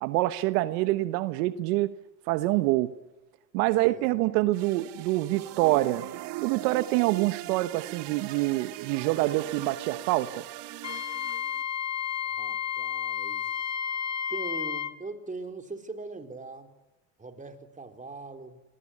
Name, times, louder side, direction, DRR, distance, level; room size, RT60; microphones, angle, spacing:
voice 1, 0.0-1.9 2.3-2.9 3.5-6.0 6.4-10.4, right 18 dB, 75° right, 12 dB, 1.3 m, -26 dB
voice 2, 3.7-4.1 12.3-13.5 14.3-16.7 17.2-18.6, right 3 dB, 15° right, 6 dB, 4.0 m, -41 dB
sound 1, 4.5-11.6, right 15 dB, 60° right, 2.1 m, -39 dB
Wind instrument woodwind instrument, 10.8-14.9, left 8 dB, 35° left, 1.4 m, -32 dB
27.0 x 20.5 x 9.9 m, 1.1 s
supercardioid pair, 100°, 47 cm